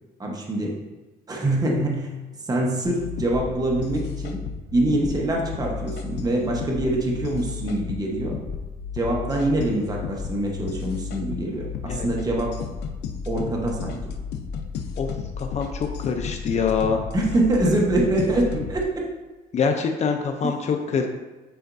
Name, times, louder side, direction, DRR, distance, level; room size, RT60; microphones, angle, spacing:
voice 1, 0.2-0.8 1.3-2.1 2.4-4.4 4.7-8.4 8.9-12.6 13.3-14.1 17.1-19.1 20.4-20.6, right 1 dB, 20° right, -1 dB, 1.1 m, -24 dB
sound 1, 2.8-18.8, left 6 dB, 80° left, 0.7 m, -33 dB
voice 2, 15.4-17.0 19.5-21.1, left 5 dB, 40° left, 5 dB, 0.6 m, -24 dB
9.3 x 4.3 x 2.6 m, 1.2 s
cardioid pair, 110°, 17 cm